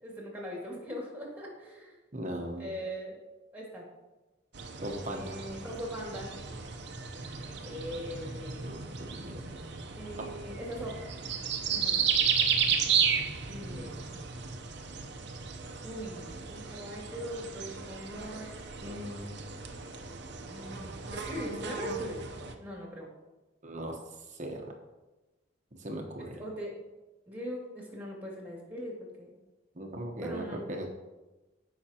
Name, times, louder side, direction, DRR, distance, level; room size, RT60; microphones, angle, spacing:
voice 1, 0.0-2.0 2.6-3.2 3.5-3.9 5.1-6.3 7.6-8.7 9.9-11.0 11.7-12.0 13.5-14.1 15.8-18.5 19.7-20.0 20.4-23.1 26.2-26.8 27.3-29.3 30.2-30.7, equal, 10° right, -3 dB, 2.4 m, -41 dB
voice 2, 2.1-2.7 4.8-5.5 8.6-9.4 10.2-10.3 13.6-14.2 18.8-19.4 23.6-24.0 24.3-24.7 25.8-26.4 29.7-30.9, right 1 dB, 40° right, 2 dB, 1.0 m, -39 dB
sound 1, 4.5-22.5, right 6 dB, 55° right, 0.8 m, -34 dB
15.5 x 5.9 x 2.9 m, 1.1 s
head